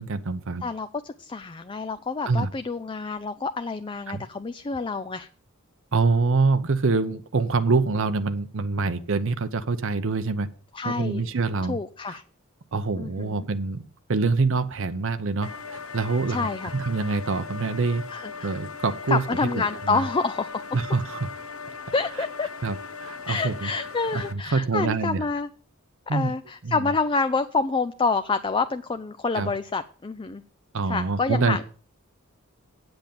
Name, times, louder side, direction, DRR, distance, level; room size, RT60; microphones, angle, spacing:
voice 1, 0.0-0.6 2.2-2.5 4.1-4.2 5.9-10.5 10.8-11.8 12.1-12.2 12.7-16.5 16.7-18.0 18.4-20.0 20.7-21.3 22.6-23.7 24.1-25.2 26.1-26.3 26.6-26.8 29.3-29.5 30.7-31.6, right 4 dB, 65° right, 10 dB, 0.7 m, -25 dB
voice 2, 0.6-5.3 10.7-11.2 11.7-12.2 13.0-13.4 16.3-16.8 18.1-18.6 19.1-20.6 21.9-22.5 23.3-25.5 26.1-30.4 30.9-31.6, left 4 dB, 25° left, 10 dB, 0.4 m, -28 dB
sound 1, 15.4-24.3, left 5 dB, 70° left, 1.0 m, -39 dB
8.9 x 7.9 x 6.8 m, 0.43 s
head